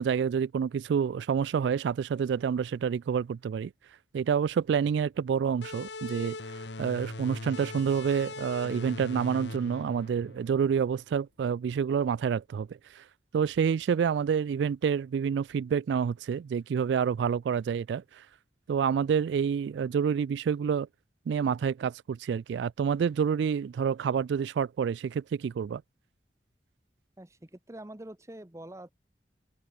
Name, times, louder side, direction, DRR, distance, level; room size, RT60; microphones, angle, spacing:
voice 1, 0.0-3.7 4.1-6.4 6.8-13.0 13.3-18.3 18.7-20.9 21.3-25.8, right 7 dB, 80° right, 0.3 m, -28 dB
sound 1, 5.6-10.9, left 2 dB, 85° left, 1.8 m, -41 dB
voice 2, 27.2-28.9, right 1 dB, 15° right, 0.9 m, -45 dB
open air
head